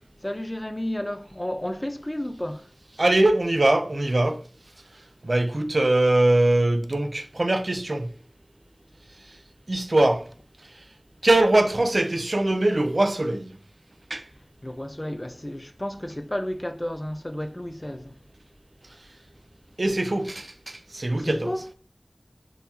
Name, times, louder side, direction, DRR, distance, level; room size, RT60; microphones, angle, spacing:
voice 1, 0.2-2.7 14.6-18.1 21.2-21.6, left 1 dB, 30° left, 0.4 m, -32 dB
voice 2, 3.0-4.4 5.2-8.1 9.7-10.2 11.2-13.5 14.1-14.2 19.8-21.5, right 2 dB, 75° right, 0.4 m, -22 dB
3.7 x 2.7 x 2.8 m
wide cardioid pair, 45°, 0 cm